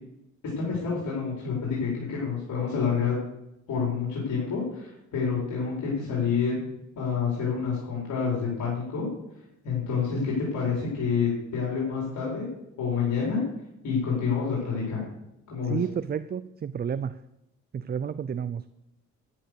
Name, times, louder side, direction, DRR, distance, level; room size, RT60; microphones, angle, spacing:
voice 1, 0.6-3.2 3.7-6.6 7.0-9.1 9.6-12.5 12.8-13.4 13.8-15.0 15.5-15.8, left 6 dB, 75° left, -5 dB, 5.1 m, -28 dB
voice 2, 10.0-10.3 15.7-17.1 17.7-18.7, right 7 dB, 35° right, 14 dB, 0.5 m, -31 dB
11.0 x 10.5 x 6.7 m, 0.86 s
cardioid pair, 90°, 30 cm